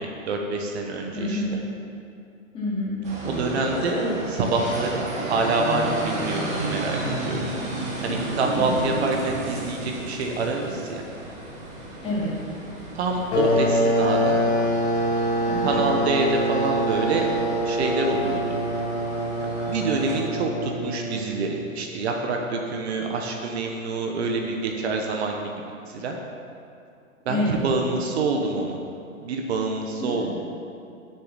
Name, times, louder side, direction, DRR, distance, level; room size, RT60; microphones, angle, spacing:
voice 1, 0.0-1.6 3.2-4.0 4.3-7.4 8.0-11.0 12.9-14.4 15.6-17.3 17.6-18.4 19.4-25.4 25.9-26.2 27.3-28.8 29.2-30.3, right 3 dB, 50° right, 2 dB, 1.1 m, -26 dB
voice 2, 1.1-1.6 2.5-3.0 8.5-8.7 12.0-12.3 15.5-15.8 27.3-27.7 30.0-30.3, left 1 dB, 15° left, -8 dB, 2.5 m, -28 dB
sound 1, 3.0-20.2, right 1 dB, 15° right, 1.5 m, -33 dB
sound 2, 13.3-21.7, equal, 50° left, 2.4 m, -25 dB
7.7 x 6.8 x 7.4 m, 2.5 s
hypercardioid pair, 155°, 41 cm